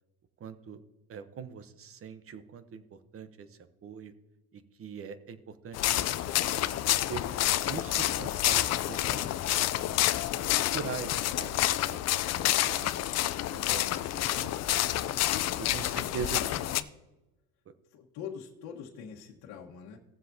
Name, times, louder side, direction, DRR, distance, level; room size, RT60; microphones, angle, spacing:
voice 1, 0.4-0.8 1.1-4.1 4.5-7.2 7.6-9.3 9.7-10.0 10.5-11.6 11.9-12.0 12.4-13.0 13.5-15.2 15.6-16.4, right 7 dB, 35° right, 12 dB, 0.9 m, -42 dB
sound 1, 5.7-16.8, left 14 dB, 40° left, 0.5 m, -28 dB
voice 2, 14.1-14.5 15.0-16.8 17.9-20.0, left 7 dB, 60° left, -2 dB, 1.4 m, -44 dB
17.5 x 7.3 x 2.8 m, 1.0 s
cardioid pair, 110°, 40 cm